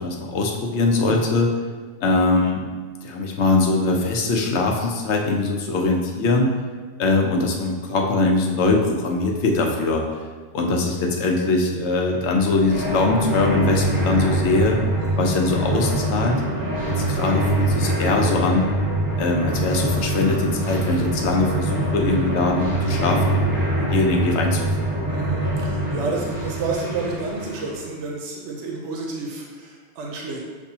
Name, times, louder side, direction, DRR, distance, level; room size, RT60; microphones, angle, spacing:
voice 1, 0.0-1.5 2.0-2.6 3.0-6.5 7.0-10.0 10.5-14.8 15.2-16.4 16.9-18.7 19.2-23.4 23.8-24.9, left 3 dB, 80° left, 1 dB, 0.9 m, -21 dB
sound 1, 12.1-27.9, right 1 dB, 20° right, 1.0 m, -24 dB
voice 2, 25.1-30.4, right 3 dB, 85° right, -1 dB, 0.9 m, -30 dB
6.8 x 2.6 x 2.8 m, 1.4 s
omnidirectional pair, 1.2 m